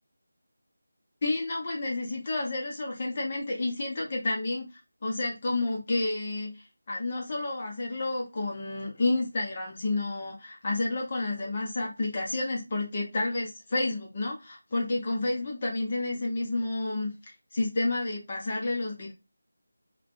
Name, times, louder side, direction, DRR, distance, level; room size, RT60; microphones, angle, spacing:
voice 1, 1.2-4.6 5.0-17.2 17.5-19.1, left 2 dB, 25° left, 0.6 m, -30 dB
3.1 x 2.1 x 4.1 m
figure-of-eight pair, 175°, 0 cm